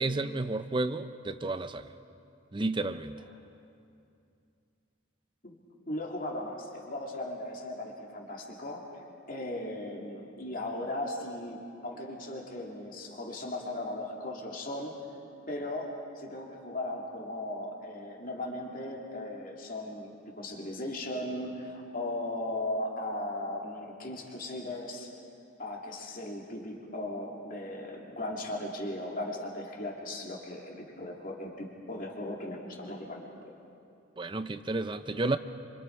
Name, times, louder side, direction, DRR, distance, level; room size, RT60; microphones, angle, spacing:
voice 1, 0.0-1.9 2.5-3.2 34.2-35.4, right 2 dB, 25° right, 11 dB, 0.5 m, -31 dB
voice 2, 5.9-15.0 15.5-25.1 25.6-33.5, left 1 dB, 40° left, -1 dB, 2.7 m, -37 dB
27.5 x 25.5 x 4.7 m, 2.6 s
head